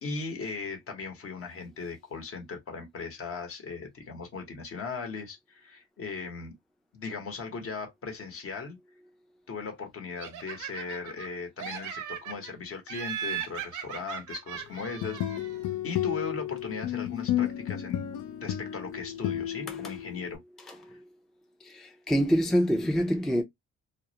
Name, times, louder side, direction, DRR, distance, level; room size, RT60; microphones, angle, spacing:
voice 1, 0.0-6.5 6.9-8.8 9.5-15.2 15.8-18.0 18.4-20.4, left 4 dB, 50° left, 0.9 m, -38 dB
Laughter, 10.2-11.3 11.6-12.5 12.9-15.7, right 9 dB, 80° right, 0.6 m, -38 dB
sound 1, 14.8-20.4, left 12 dB, 80° left, 0.4 m, -32 dB
voice 2, 21.6-23.4, equal, ahead, 0.4 m, -26 dB
2.3 x 2.0 x 2.7 m
cardioid pair, 90°, 30 cm